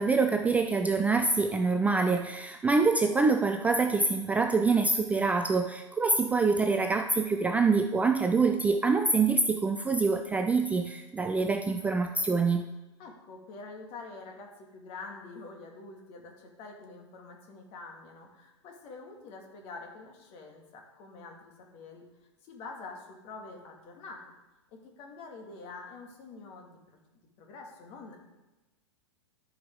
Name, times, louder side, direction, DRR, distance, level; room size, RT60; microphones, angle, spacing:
voice 1, 0.0-12.6, right 4 dB, 10° right, 6 dB, 0.3 m, -25 dB
voice 2, 13.0-22.0 22.5-24.2 24.7-26.8 27.4-28.2, left 3 dB, 40° left, 1 dB, 1.9 m, -46 dB
13.5 x 4.8 x 3.6 m, 1.1 s
figure-of-eight pair, 100°, 15 cm